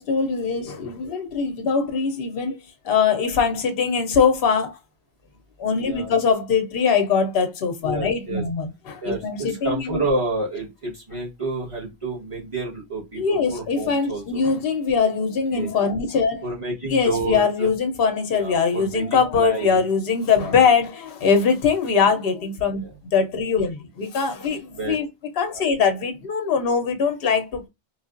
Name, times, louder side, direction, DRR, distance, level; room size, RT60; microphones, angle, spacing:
voice 1, 0.0-2.6 2.8-4.8 5.6-10.0 13.2-16.4 16.8-25.1 25.4-27.7, left 5 dB, 65° left, 0.9 m, -22 dB
voice 2, 5.8-6.1 7.8-8.4 9.0-14.4 15.5-15.7 16.4-17.7 18.3-19.8 20.4-20.8 22.8-22.9 24.7-25.0 25.5-25.6, right 2 dB, 30° right, 1.4 m, -30 dB
3.2 x 2.4 x 2.4 m
omnidirectional pair, 1.1 m